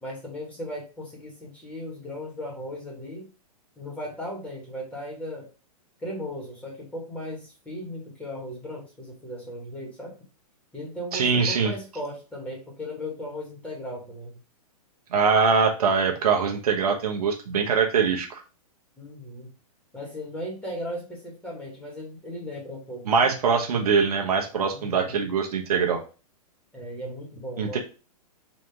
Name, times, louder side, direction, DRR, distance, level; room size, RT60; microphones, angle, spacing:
voice 1, 0.0-3.3 3.8-5.5 6.0-10.1 10.7-14.4 19.0-19.5 19.9-23.3 24.7-25.1 26.7-27.8, equal, 5° left, -4 dB, 1.9 m, -37 dB
voice 2, 11.1-11.7 15.1-18.4 23.1-26.0 27.6-27.8, right 5 dB, 75° right, 2 dB, 1.1 m, -23 dB
4.1 x 2.9 x 3.6 m, 0.34 s
hypercardioid pair, 130°, 20 cm